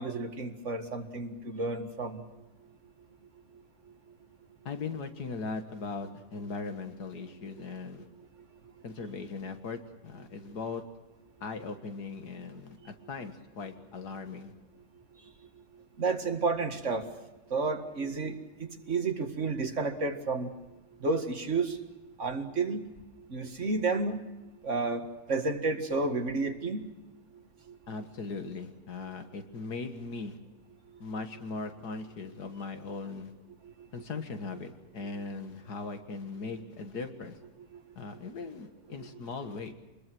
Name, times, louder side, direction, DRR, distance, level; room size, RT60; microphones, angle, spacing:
voice 1, 0.0-2.2 16.0-17.1 17.5-20.5 21.0-21.8 22.2-22.9 23.3-24.2 24.6-26.9 27.7-27.8, right 3 dB, 50° right, 5 dB, 2.2 m, -31 dB
voice 2, 4.7-8.1 8.8-10.8 11.4-14.5 27.9-30.4 31.0-33.3 33.9-37.4 38.0-39.7, left 4 dB, 85° left, 7 dB, 2.2 m, -39 dB
26.5 x 21.0 x 6.2 m, 1.1 s
omnidirectional pair, 1.7 m